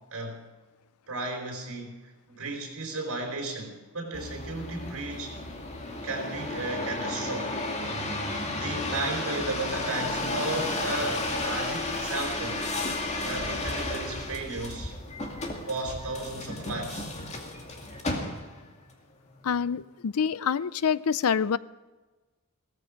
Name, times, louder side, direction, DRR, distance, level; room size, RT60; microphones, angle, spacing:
voice 1, 0.1-0.5 1.1-2.0 2.3-5.4 6.0-7.6 8.5-12.6 13.2-14.9 15.6-17.1, right 2 dB, 65° right, 2 dB, 4.5 m, -34 dB
sound 1, 4.1-18.7 19.3-19.8, left 2 dB, 30° left, 2.2 m, -33 dB
sound 2, 9.0-12.7, left 2 dB, 60° left, 2.8 m, -52 dB
voice 2, 19.4-21.6, left 6 dB, 75° left, 19 dB, 0.5 m, -26 dB
17.0 x 14.5 x 5.1 m, 1.2 s
head